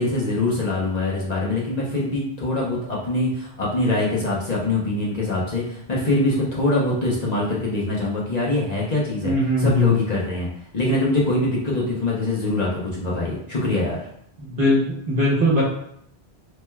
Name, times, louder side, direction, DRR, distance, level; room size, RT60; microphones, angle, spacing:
voice 1, 0.0-10.5 10.7-14.0, left 2 dB, 45° left, -5 dB, 0.9 m, -23 dB
voice 2, 9.2-10.0 14.5-15.6, left 1 dB, 55° right, -4 dB, 1.3 m, -20 dB
4.2 x 3.2 x 2.3 m, 0.71 s
omnidirectional pair, 1.1 m